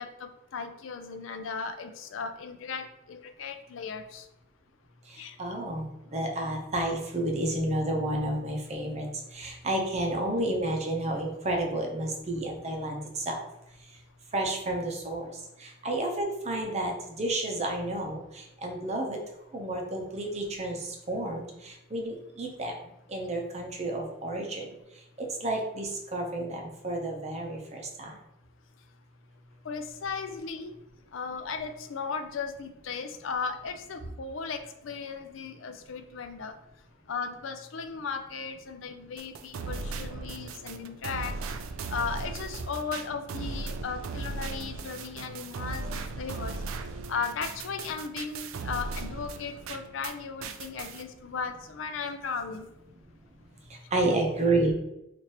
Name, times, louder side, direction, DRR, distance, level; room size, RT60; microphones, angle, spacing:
voice 1, 0.0-4.3 5.2-5.4 29.6-30.7 31.1-36.5 37.1-41.4 41.9-46.6 47.1-52.7, left 5 dB, 70° left, 8 dB, 0.4 m, -36 dB
voice 2, 5.1-13.4 14.3-15.3 15.6-19.2 19.5-22.7 23.1-24.7 25.2-28.1 45.8-45.9 53.7-54.7, right 1 dB, 35° right, 2 dB, 0.6 m, -31 dB
sound 1, 39.2-50.1 50.4-51.0, right 3 dB, 80° right, 0.4 m, -37 dB
4.5 x 2.5 x 2.9 m, 0.86 s
head